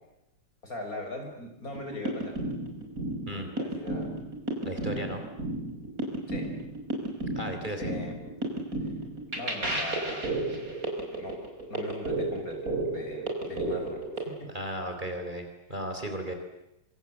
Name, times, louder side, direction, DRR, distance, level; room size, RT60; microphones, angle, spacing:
voice 1, 0.6-2.4 3.3-4.1 6.3-6.5 7.8-8.2 9.3-10.3 11.1-11.4 11.7-12.6 12.8-14.5, left 2 dB, 50° left, 2 dB, 7.1 m, -40 dB
sound 1, 1.7-14.2, right 2 dB, 50° right, 5.8 m, -33 dB
voice 2, 4.6-5.2 7.4-7.9 14.5-16.3, equal, 25° right, 5 dB, 3.8 m, -35 dB
26.5 x 26.0 x 8.0 m, 0.88 s
omnidirectional pair, 1.9 m